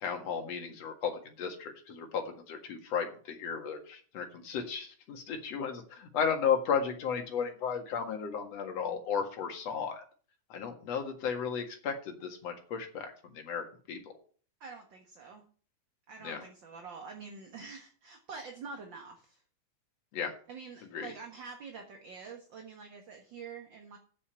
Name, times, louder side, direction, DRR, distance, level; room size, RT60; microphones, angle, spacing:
voice 1, 0.0-10.0 10.5-14.0 16.2-16.4 20.1-20.3 20.9-21.1, left 6 dB, 60° left, 3 dB, 2.8 m, -34 dB
voice 2, 14.6-15.4 16.1-19.4 20.5-24.0, right 5 dB, 45° right, 3 dB, 1.9 m, -46 dB
8.7 x 6.9 x 8.2 m, 0.42 s
omnidirectional pair, 3.5 m